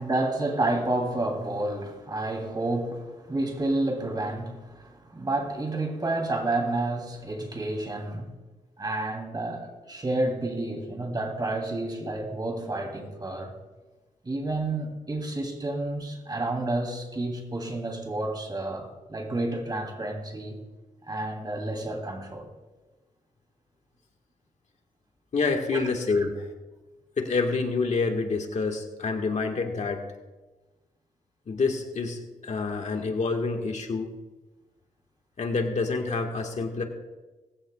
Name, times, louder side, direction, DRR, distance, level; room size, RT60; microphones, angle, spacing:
voice 1, 0.0-8.4 8.8-13.5 14.2-20.6 21.1-22.5 25.7-26.3, right 2 dB, 30° right, 3.1 m, -30 dB
voice 2, 25.3-26.5 27.2-30.0 31.5-34.1 35.4-36.8, left 4 dB, 55° left, 1.7 m, -27 dB
19.5 x 14.5 x 2.4 m
cardioid pair, 85°, 14 cm